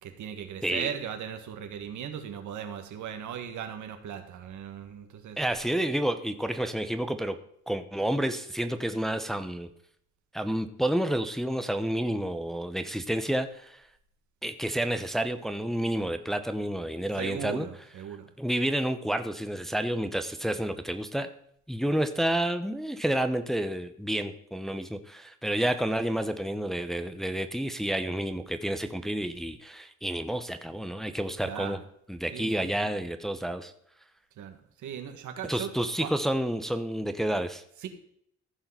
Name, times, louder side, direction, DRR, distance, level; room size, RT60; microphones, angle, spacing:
voice 1, 0.0-5.4 17.1-18.3 31.4-31.8 32.3-32.9 34.4-35.7 36.0-36.1 37.8-37.9, right 8 dB, 75° right, 6 dB, 1.6 m, -38 dB
voice 2, 0.6-0.9 5.4-7.4 7.7-9.7 10.3-13.8 14.4-17.7 18.4-21.3 21.7-31.8 32.1-33.7 35.5-37.6, right 1 dB, ahead, 8 dB, 0.8 m, -30 dB
15.0 x 5.6 x 5.7 m, 0.69 s
cardioid pair, 90°, 30 cm